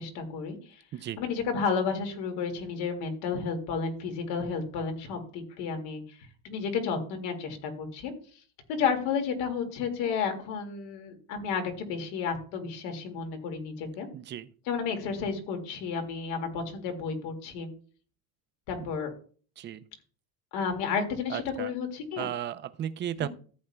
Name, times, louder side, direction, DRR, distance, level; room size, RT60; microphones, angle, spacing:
voice 1, 0.0-0.8 1.2-6.2 6.4-8.1 8.7-14.1 14.7-17.7 18.7-19.1 20.5-22.3 23.2-23.3, left 5 dB, 70° left, 5 dB, 2.1 m, -32 dB
voice 2, 14.1-14.5 19.6-19.8 21.3-21.7 22.2-23.3, right 10 dB, 30° right, 13 dB, 0.4 m, -34 dB
14.0 x 8.5 x 2.2 m, 0.43 s
cardioid pair, 140°, 41 cm